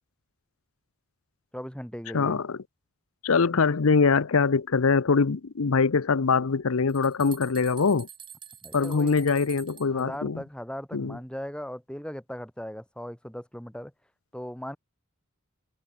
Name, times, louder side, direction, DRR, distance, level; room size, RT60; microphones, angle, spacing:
voice 1, 1.5-2.4 8.6-9.2 9.9-13.9 14.3-14.8, equal, 5° left, 3.9 m, -38 dB
voice 2, 2.1-2.6 3.2-8.1 8.7-10.4 10.9-11.2, left 4 dB, 80° left, 0.7 m, -23 dB
sound 1, 6.5-10.0, right 8 dB, 25° right, 1.7 m, -46 dB
head